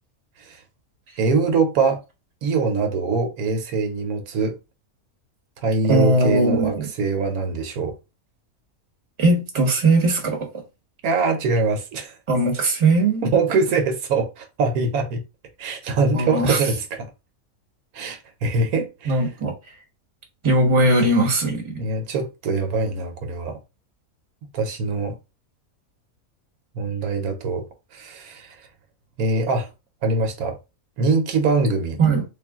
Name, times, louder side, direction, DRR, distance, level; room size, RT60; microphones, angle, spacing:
voice 1, 1.2-2.0 2.4-4.6 5.6-7.9 11.0-12.2 13.2-15.2 15.6-17.1 17.9-19.3 21.8-23.6 24.5-25.2 26.7-27.6 27.9-28.7 29.2-29.7 30.0-30.6 31.0-32.0, right 4 dB, 75° right, 1.1 m, -23 dB
voice 2, 5.9-6.9 9.2-10.5 12.3-13.2 16.1-16.6 19.1-19.8 20.4-21.9 32.0-32.2, right 2 dB, 25° right, 0.9 m, -19 dB
3.5 x 2.4 x 3.4 m
omnidirectional pair, 1.6 m